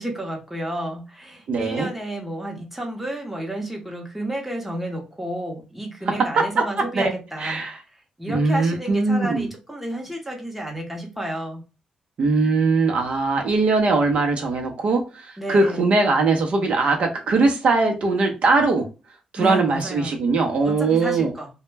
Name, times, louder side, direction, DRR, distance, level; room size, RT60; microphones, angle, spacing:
voice 1, 0.0-7.6 8.2-11.6 15.4-15.9 19.4-20.2 20.6-21.5, right 1 dB, 5° right, 0.7 m, -31 dB
voice 2, 1.5-1.9 6.4-7.1 7.4-7.8 8.3-9.5 12.2-18.9 19.3-21.3, right 3 dB, 55° right, 0.6 m, -21 dB
2.1 x 2.0 x 3.2 m
cardioid pair, 110°, 2 cm